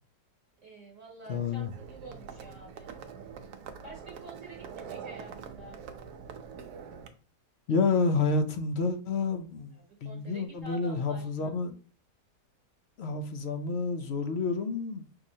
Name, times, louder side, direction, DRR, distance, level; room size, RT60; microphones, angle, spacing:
voice 1, 0.6-2.9 3.8-5.8 9.7-11.5, right 1 dB, 55° right, 1.2 m, -48 dB
voice 2, 1.3-1.7 7.7-9.7 10.0-11.7 13.0-15.0, left 4 dB, 60° left, 0.7 m, -29 dB
Livestock farm animals working animals, 1.3-7.1, right 6 dB, 75° right, 1.1 m, -44 dB
5.9 x 3.1 x 2.7 m
omnidirectional pair, 1.7 m